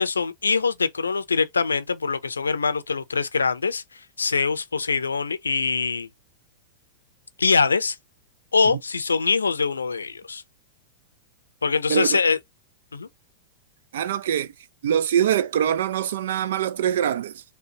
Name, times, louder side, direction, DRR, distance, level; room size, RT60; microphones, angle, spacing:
voice 1, 0.0-6.1 7.4-8.0 8.5-10.4 11.6-12.4 12.9-13.1, left 5 dB, 80° left, 0.5 m, -23 dB
voice 2, 13.9-14.5 14.8-17.4, right 9 dB, 60° right, 0.4 m, -23 dB
5.1 x 2.2 x 2.8 m
figure-of-eight pair, 95°, 0 cm